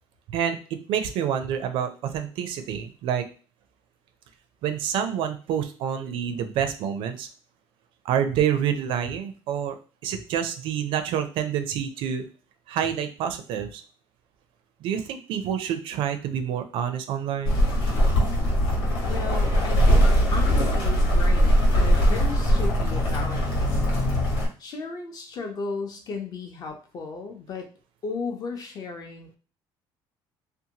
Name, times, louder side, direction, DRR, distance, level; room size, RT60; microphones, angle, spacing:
voice 1, 0.9-3.3 4.6-7.3 8.0-9.8 10.0-12.2 12.7-13.8 14.8-17.6, right 9 dB, 65° right, 8 dB, 0.4 m, -27 dB
sound 1, 17.4-24.5, equal, 80° left, 1.2 m, -21 dB
voice 2, 19.1-23.8 24.6-27.7 28.0-29.4, left 4 dB, 45° left, 4 dB, 0.6 m, -35 dB
2.7 x 2.2 x 2.8 m, 0.37 s
cardioid pair, 140°, 9 cm